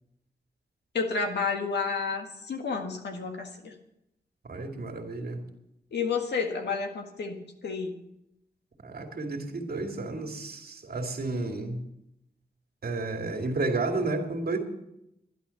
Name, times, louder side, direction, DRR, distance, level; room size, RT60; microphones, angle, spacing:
voice 1, 0.9-3.7 5.9-7.4 7.6-8.0, left 5 dB, 85° left, 4 dB, 1.8 m, -30 dB
voice 2, 4.4-5.4 8.8-11.8 12.8-14.6, right 3 dB, 65° right, 3 dB, 2.4 m, -31 dB
11.0 x 11.0 x 7.0 m, 0.81 s
wide cardioid pair, 95°, 17 cm